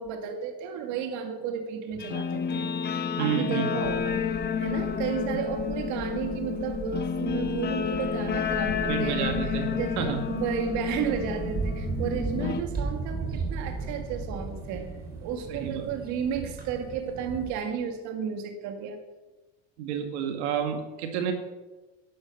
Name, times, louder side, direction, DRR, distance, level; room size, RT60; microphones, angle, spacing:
voice 1, 0.0-4.2 4.6-10.0 10.3-14.9 15.2-19.0, right 7 dB, 60° right, 5 dB, 2.1 m, -33 dB
Guitar, 2.0-12.6, left 7 dB, 30° left, 1.1 m, -30 dB
voice 2, 3.2-3.7 8.9-9.7 10.0-10.2 15.5-15.9 19.8-21.3, right 8 dB, 80° right, 5 dB, 2.2 m, -29 dB
sound 1, 3.8-15.9, right 2 dB, 10° right, 3.8 m, -43 dB
sound 2, 11.1-17.5, right 4 dB, 30° right, 3.7 m, -35 dB
11.5 x 11.5 x 6.7 m, 1.2 s
supercardioid pair, 120°, 33 cm